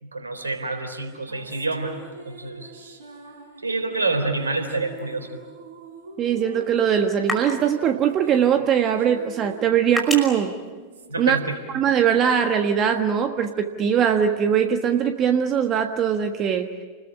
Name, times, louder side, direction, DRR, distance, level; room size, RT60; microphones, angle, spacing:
voice 1, 0.0-2.0 2.3-2.7 3.6-5.3 11.1-11.6, right 3 dB, 75° right, 7 dB, 3.8 m, -27 dB
sound 1, 1.0-14.6, right 2 dB, 60° right, 3.8 m, -44 dB
sound 2, 4.9-11.7, left 1 dB, 5° left, 5.8 m, -37 dB
voice 2, 6.2-10.5 11.2-11.4 11.7-16.7, right 8 dB, 30° right, 6 dB, 1.4 m, -21 dB
29.5 x 21.0 x 8.9 m, 1.4 s
figure-of-eight pair, 90°, 0 cm